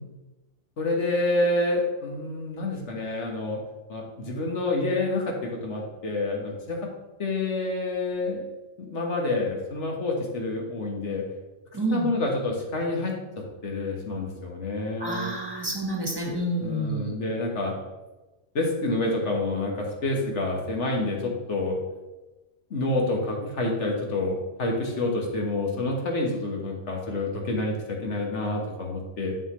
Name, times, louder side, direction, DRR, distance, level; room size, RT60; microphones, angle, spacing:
voice 1, 0.8-3.6 3.9-6.8 7.2-8.4 8.8-11.2 11.9-13.1 13.6-15.3 16.6-17.8 18.5-21.8 22.7-29.3, left 2 dB, 70° left, 1 dB, 1.6 m, -28 dB
voice 2, 11.7-12.1 15.0-17.2, right 1 dB, 20° right, 0 dB, 1.2 m, -29 dB
7.4 x 6.8 x 3.1 m, 1.1 s
omnidirectional pair, 1.3 m